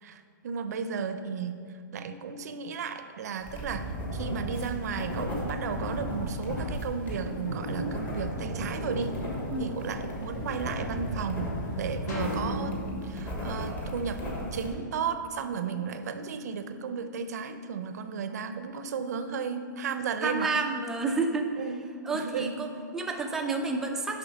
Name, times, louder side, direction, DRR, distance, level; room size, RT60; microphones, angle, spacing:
voice 1, 0.0-1.6 1.9-9.2 9.6-14.2 14.5-20.5 21.6-21.7 22.1-22.6, right 6 dB, 55° right, 9 dB, 0.6 m, -34 dB
sound 1, 3.4-14.7, equal, 15° left, 1.2 m, -36 dB
Thunder / Rain, 6.5-12.0, equal, 75° left, 2.1 m, -38 dB
sound 2, 12.1-14.5, left 1 dB, 60° left, 1.8 m, -35 dB
voice 2, 20.2-21.5 22.1-24.2, right 3 dB, 5° right, 1 dB, 0.4 m, -30 dB
7.2 x 5.5 x 5.4 m, 2.3 s
hypercardioid pair, 160°, 10 cm